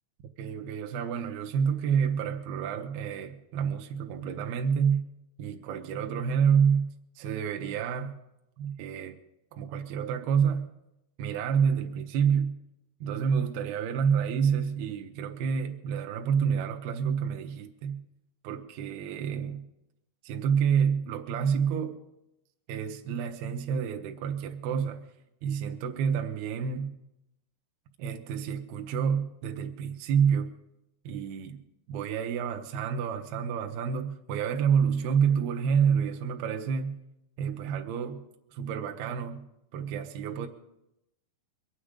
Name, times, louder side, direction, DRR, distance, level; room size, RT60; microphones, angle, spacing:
voice 1, 0.4-5.1 5.4-8.2 8.6-9.2 9.5-10.7 11.2-12.6 13.0-18.0 18.4-19.7 20.2-22.0 22.7-25.0 25.4-26.9 28.0-30.6 31.1-31.6 31.9-37.0 37.4-38.2 38.5-39.5 39.7-40.5, right 7 dB, 75° right, 2.6 m, -28 dB
23.0 x 8.9 x 5.0 m
omnidirectional pair, 4.8 m